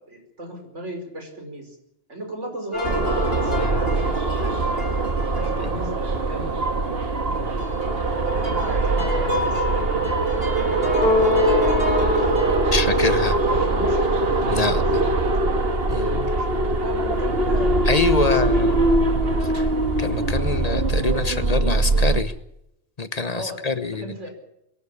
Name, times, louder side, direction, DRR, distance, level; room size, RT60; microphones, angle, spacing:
voice 1, 0.0-1.8 2.1-4.9 5.4-7.2 8.2-9.6 13.5-14.1 14.5-16.5 16.8-19.0 23.3-24.3, right 1 dB, 80° right, 3 dB, 5.6 m, -36 dB
sound 1, 2.7-6.4 6.9-7.0 7.3-15.2 15.5-15.8 16.3-16.7 17.2-17.9, left 4 dB, 55° left, 3.7 m, -29 dB
sound 2, 2.8-22.2, right 2 dB, 55° right, 2.0 m, -22 dB
voice 2, 12.7-13.4 14.5-15.0 15.9-16.3 17.8-18.7 19.4-22.3 23.0-24.3, left 3 dB, 35° left, 12 dB, 1.1 m, -26 dB
23.0 x 14.0 x 8.6 m, 0.81 s
omnidirectional pair, 1.2 m